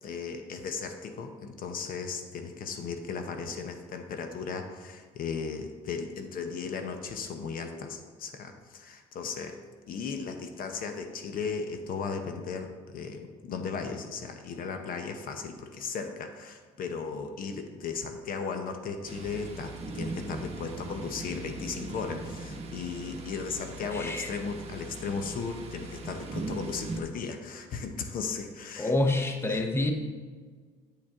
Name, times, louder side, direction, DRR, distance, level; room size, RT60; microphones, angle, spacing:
voice 1, 0.0-9.6 9.9-28.9 29.5-29.6, left 5 dB, 55° left, 6 dB, 0.7 m, -36 dB
Thunder, 19.0-27.0, right 2 dB, 35° right, 1.0 m, -39 dB
voice 2, 23.9-24.3 28.8-29.9, left 2 dB, 15° left, 4 dB, 0.7 m, -27 dB
8.5 x 5.1 x 3.6 m, 1.5 s
cardioid pair, 110°, 17 cm